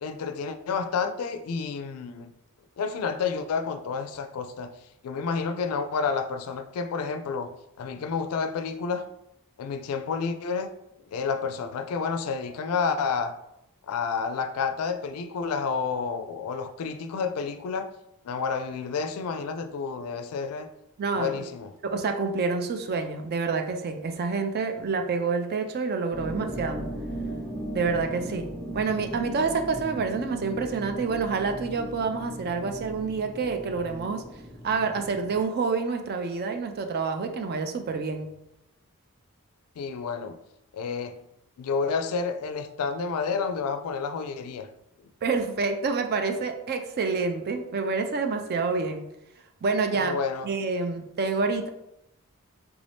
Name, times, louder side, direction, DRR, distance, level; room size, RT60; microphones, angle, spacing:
voice 1, 0.0-2.3 2.8-4.7 5.0-9.1 9.6-10.7 11.1-13.4 13.9-17.9 18.2-20.7 21.1-21.7 39.8-40.4 40.7-41.2 41.6-44.7 50.0-50.5, left 5 dB, 75° left, 9 dB, 0.4 m, -30 dB
voice 2, 21.0-21.5 21.8-26.8 27.7-34.2 34.6-38.3 45.2-49.0 49.6-50.2 50.4-51.7, right 4 dB, 45° right, 6 dB, 0.4 m, -28 dB
sound 1, 26.1-35.4, right 1 dB, 5° left, 1.0 m, -37 dB
3.5 x 2.6 x 3.3 m, 0.84 s
head